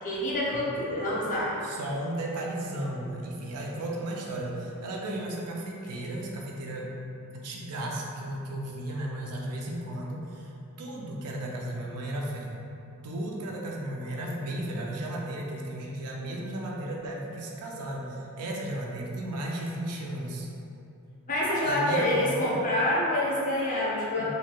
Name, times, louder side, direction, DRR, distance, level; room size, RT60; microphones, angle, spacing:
voice 1, 0.0-1.6 21.3-24.2, left 1 dB, 35° left, -6 dB, 0.6 m, -27 dB
voice 2, 1.6-6.9 7.3-10.5 10.8-12.5 13.0-20.5 21.6-22.4 24.2-24.3, right 1 dB, 90° right, -1 dB, 0.5 m, -34 dB
3.1 x 2.7 x 2.3 m, 2.7 s
head